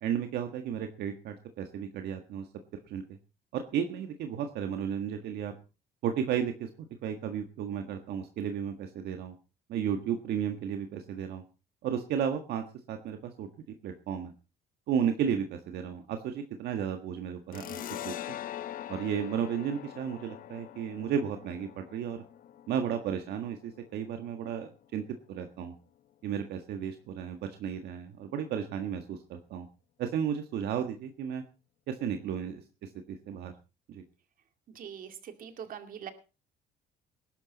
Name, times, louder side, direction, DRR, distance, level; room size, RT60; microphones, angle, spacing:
voice 1, 0.0-2.5 2.9-3.0 3.5-5.5 6.0-9.3 9.7-11.4 11.8-13.5 13.8-14.3 14.9-18.4 18.9-22.2 22.7-25.0 25.3-25.7 26.2-29.7 30.0-31.4 31.9-33.5 33.9-34.0, right 8 dB, 75° right, 6 dB, 1.6 m, -33 dB
sound 1, 17.5-24.7, left 11 dB, 55° left, 0.8 m, -43 dB
voice 2, 34.7-36.1, right 8 dB, 55° right, 8 dB, 2.3 m, -43 dB
20.0 x 11.5 x 4.1 m, 0.32 s
cardioid pair, 110°, 17 cm